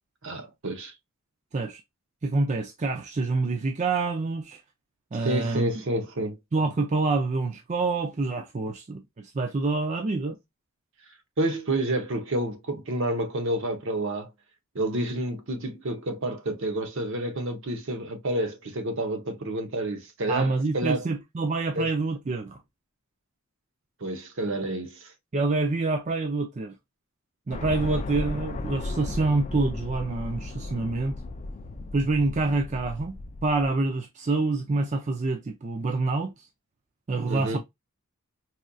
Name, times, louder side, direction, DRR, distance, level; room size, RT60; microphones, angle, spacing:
voice 1, 0.2-0.9 5.2-6.4 11.4-14.3 14.7-21.1 21.7-21.9 24.0-25.1 37.3-37.6, right 1 dB, 60° right, 0.8 m, -29 dB
voice 2, 2.2-4.6 5.1-5.7 6.5-10.4 20.3-22.6 25.3-26.8 27.5-31.2 31.9-36.5 37.1-37.6, right 3 dB, 30° right, 0.4 m, -27 dB
sound 1, 27.5-33.7, left 2 dB, 30° left, 0.4 m, -35 dB
4.2 x 2.6 x 2.3 m
head